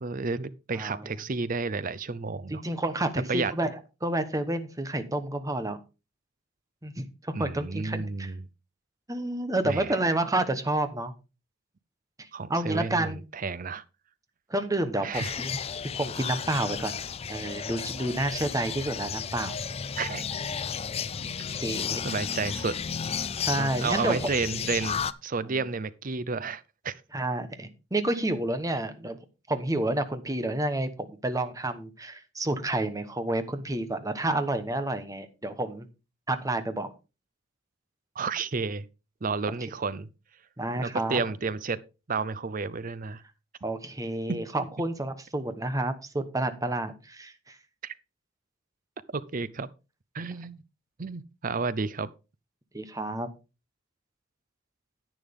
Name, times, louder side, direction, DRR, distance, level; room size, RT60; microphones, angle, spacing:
voice 1, 0.0-2.6 3.3-3.5 7.3-8.5 9.6-10.0 12.3-13.8 15.0-15.3 20.0-20.3 22.0-22.8 23.6-26.9 38.2-38.9 39.2-40.1 40.8-41.8 42.1-43.2 44.3-44.4 47.8-47.9 49.1-49.7 50.1-50.6 51.0-52.1, right 4 dB, 40° right, 0.6 m, -31 dB
voice 2, 2.5-5.8 6.8-8.3 9.1-11.1 12.2-13.2 14.5-15.6 15.9-17.0 17.3-19.6 21.2-22.0 23.4-24.2 25.5-25.6 27.1-29.2 29.5-35.9 36.3-36.9 40.6-41.2 43.6-47.6 52.7-53.3, right 1 dB, 15° right, 1.1 m, -30 dB
sound 1, 15.1-25.1, left 7 dB, 30° left, 0.4 m, -33 dB
10.5 x 9.2 x 3.6 m
head